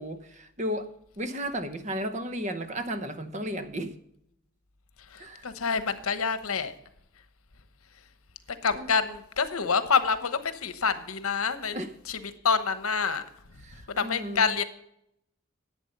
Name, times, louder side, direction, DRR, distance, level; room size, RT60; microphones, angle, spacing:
voice 1, 0.0-3.9 5.2-5.5 8.7-8.9 11.7-11.9 13.6-14.5, equal, 35° right, 0.9 m, -34 dB
voice 2, 5.1-6.7 8.6-11.8 12.0-13.2 13.9-14.6, left 5 dB, 85° left, 1.0 m, -27 dB
11.0 x 8.2 x 5.4 m
head